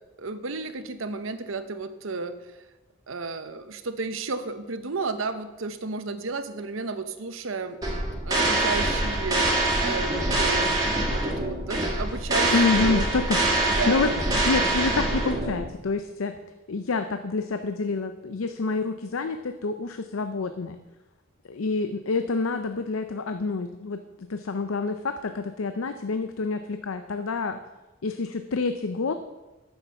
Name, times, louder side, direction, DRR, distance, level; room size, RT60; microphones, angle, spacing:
voice 1, 0.2-2.3 3.1-7.8 8.2-9.5 9.8-10.8 11.1-13.1 13.6-14.4, right 3 dB, 80° right, 11 dB, 0.9 m, -32 dB
sound 1, 7.8-15.7, right 2 dB, 20° right, 1.9 m, -25 dB
voice 2, 12.5-14.1 14.5-16.3 16.7-20.8 21.5-27.6 28.0-29.1, left 3 dB, 90° left, 8 dB, 0.6 m, -27 dB
10.5 x 7.1 x 6.9 m, 1.1 s
head